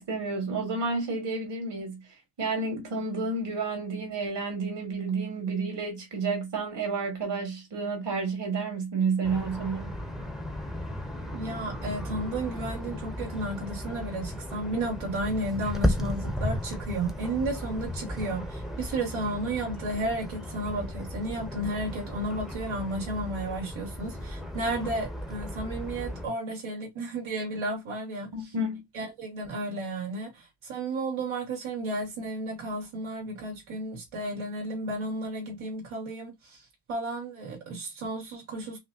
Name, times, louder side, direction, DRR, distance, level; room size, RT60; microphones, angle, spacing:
voice 1, 0.0-2.0 2.4-10.0 28.3-28.8, right 4 dB, 60° right, 2.7 m, -30 dB
sound 1, 9.2-26.3, left 1 dB, ahead, 0.8 m, -35 dB
voice 2, 11.3-28.3 28.9-36.6 36.9-38.8, right 2 dB, 80° right, 2.9 m, -33 dB
5.6 x 2.9 x 2.8 m
cardioid pair, 120°, 47 cm